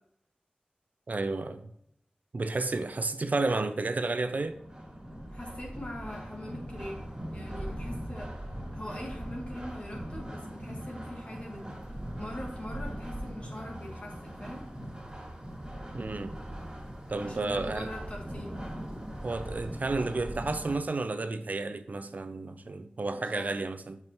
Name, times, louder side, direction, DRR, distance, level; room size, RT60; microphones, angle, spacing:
voice 1, 1.1-1.7 2.3-4.6 15.9-16.3 17.1-17.9 19.2-24.0, right 3 dB, 60° right, 0.5 m, -31 dB
sound 1, 4.2-20.8, equal, 25° right, 2.4 m, -40 dB
voice 2, 5.3-8.3 8.7-11.6 12.2-14.6 17.2-18.5 23.2-23.6, left 1 dB, 45° left, 2.3 m, -42 dB
8.6 x 6.0 x 3.0 m
wide cardioid pair, 55°, 3 cm